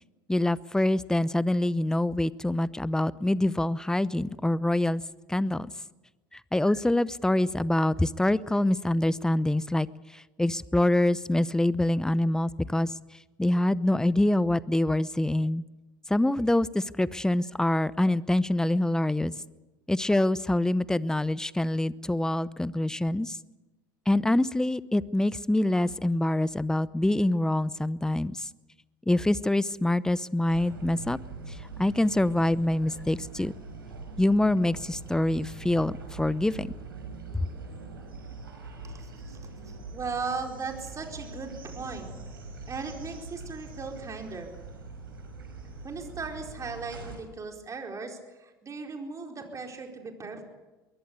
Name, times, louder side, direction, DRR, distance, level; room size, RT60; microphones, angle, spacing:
voice 1, 0.3-5.0 5.3-5.7 6.3-9.9 10.1-12.9 13.4-15.6 16.1-19.3 19.9-23.4 24.1-28.5 29.1-31.2 31.5-33.5 34.2-36.7 37.3-37.5, left 1 dB, 5° left, 19 dB, 0.7 m, -25 dB
sound 1, 30.5-47.2, right 3 dB, 90° right, 5.6 m, -43 dB
voice 2, 38.9-39.4 39.7-42.1 42.7-44.5 45.8-50.4, right 4 dB, 30° right, 3 dB, 4.6 m, -37 dB
22.5 x 17.0 x 8.3 m, 1.1 s
hypercardioid pair, 80°, 11 cm